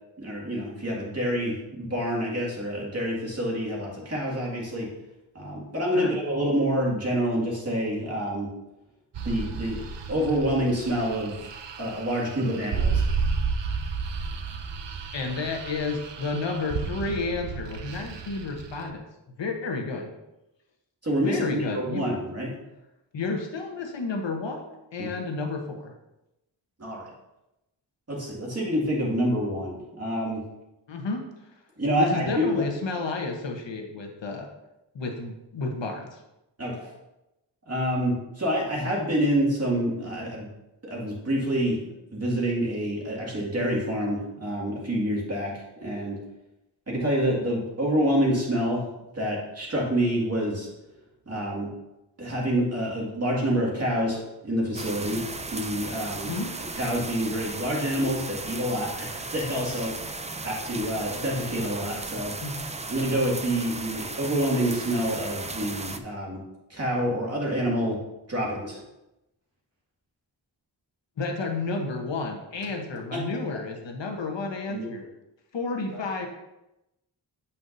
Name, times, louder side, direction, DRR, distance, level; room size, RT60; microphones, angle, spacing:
voice 1, 0.2-4.9 5.3-8.5 9.2-9.8 10.1-11.5 11.8-13.0 21.0-22.5 25.0-25.1 26.8-27.1 28.1-30.4 31.8-32.6 36.6-36.9 37.7-40.5 40.8-46.2 46.9-48.9 49.1-50.7 51.3-51.7 52.2-55.2 55.5-56.3 56.7-60.0 60.4-62.3 62.9-66.4 66.7-68.0 68.3-68.8 73.1-73.2 74.7-74.9 75.9-76.1, equal, 35° right, -4 dB, 2.2 m, -27 dB
sound 1, 9.1-18.9, right 5 dB, 70° right, 0.6 m, -32 dB
voice 2, 15.1-19.0 19.4-20.1 21.2-22.0 23.1-25.9 30.9-31.2 32.0-34.5 34.9-36.2 56.2-56.5 62.4-62.7 71.2-75.0 75.5-76.3, left 3 dB, 70° left, 2 dB, 1.1 m, -31 dB
sound 2, 54.7-66.0, right 3 dB, 15° right, 0.3 m, -36 dB
7.9 x 5.6 x 2.7 m, 0.92 s
wide cardioid pair, 80°, 45 cm